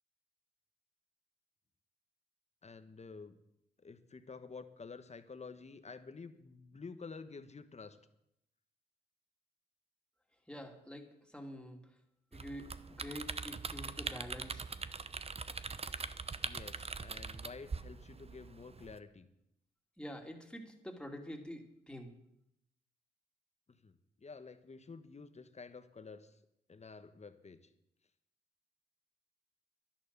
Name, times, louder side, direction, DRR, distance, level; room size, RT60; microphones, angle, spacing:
voice 1, 2.6-3.4 3.8-8.0 16.4-19.3 23.7-26.3 26.7-27.6, left 4 dB, 35° left, 10 dB, 1.3 m, -50 dB
voice 2, 10.5-11.8 12.3-12.7 13.0-14.7 20.0-22.1, equal, 5° left, 2 dB, 2.9 m, -46 dB
sound 1, 12.3-19.0, right 4 dB, 35° right, 0.9 m, -42 dB
11.0 x 10.5 x 6.9 m, 0.80 s
supercardioid pair, 55°, 18 cm